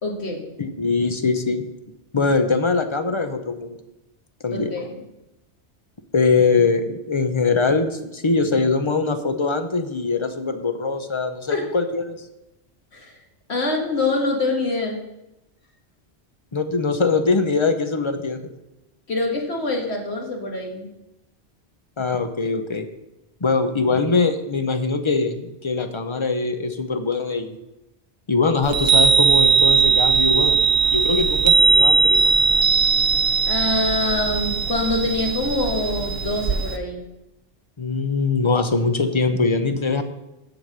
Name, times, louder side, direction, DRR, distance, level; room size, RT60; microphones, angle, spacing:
voice 1, 0.0-0.4 4.5-4.9 11.5-11.7 12.9-13.2 13.5-15.0 19.1-20.9 33.5-37.0, left 2 dB, 70° left, 0 dB, 2.1 m, -25 dB
voice 2, 0.6-1.7 2.1-3.8 4.4-4.8 6.1-12.2 16.5-18.4 22.0-22.9 23.4-27.6 28.3-30.6 30.9-32.3 37.8-40.0, left 4 dB, 30° left, 7 dB, 0.8 m, -22 dB
Chime, 28.6-36.8, right 5 dB, 60° right, 1.1 m, -18 dB
7.8 x 7.1 x 6.5 m, 0.93 s
omnidirectional pair, 1.2 m